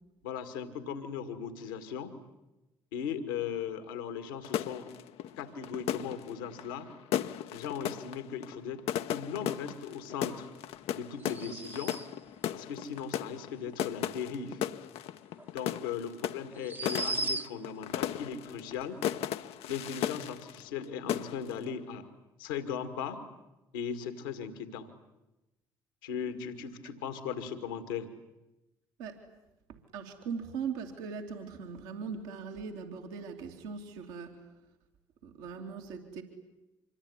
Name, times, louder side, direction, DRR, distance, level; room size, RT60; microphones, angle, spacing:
voice 1, 0.2-2.1 2.9-4.9 5.4-6.9 7.5-8.8 9.1-10.5 10.9-12.0 12.5-14.6 15.5-19.0 19.7-22.1 22.4-23.2 23.7-24.9 26.0-28.1, left 7 dB, 85° left, 9 dB, 2.2 m, -38 dB
sound 1, 4.4-20.8 21.1-21.6, left 11 dB, 65° left, 0.9 m, -36 dB
sound 2, 11.2-12.3 15.4-15.5 16.5-17.8, right 2 dB, 20° right, 1.0 m, -36 dB
voice 2, 29.7-34.4 35.2-36.2, right 6 dB, 75° right, 3 dB, 3.0 m, -40 dB
26.0 x 23.0 x 10.0 m, 0.98 s
hypercardioid pair, 50°, 11 cm